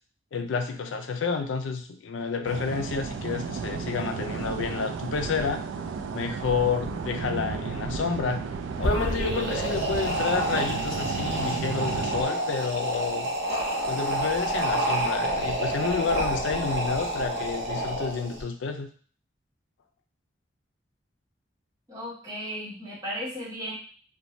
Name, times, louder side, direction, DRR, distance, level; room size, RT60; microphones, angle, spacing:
voice 1, 0.3-5.6 6.1-8.4 8.8-13.3 13.9-18.9, left 5 dB, 80° left, 5 dB, 0.4 m, -30 dB
sound 1, 2.4-12.2, right 5 dB, 80° right, 0.3 m, -33 dB
sound 2, 8.7-18.4, right 1 dB, 60° right, 0.7 m, -28 dB
voice 2, 21.9-23.7, equal, 20° right, -8 dB, 1.1 m, -35 dB
2.6 x 2.2 x 3.0 m, 0.43 s
head